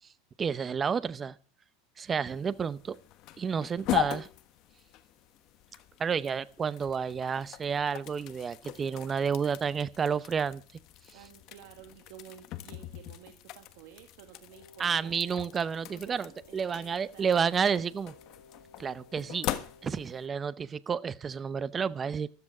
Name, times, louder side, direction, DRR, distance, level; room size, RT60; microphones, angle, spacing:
voice 1, 0.4-1.4 2.0-3.0 3.4-4.3 6.0-10.6 14.8-18.1 18.8-19.5 19.8-22.3, right 6 dB, 20° right, 0.7 m, -30 dB
sound 1, 2.2-20.3, left 14 dB, 45° left, 1.3 m, -40 dB
voice 2, 11.1-15.3 15.9-17.5, right 11 dB, 65° right, 2.0 m, -52 dB
Wind instrument woodwind instrument, 14.5-20.2, left 3 dB, 90° left, 2.3 m, -57 dB
13.5 x 13.5 x 4.9 m
supercardioid pair, 150°, 0 cm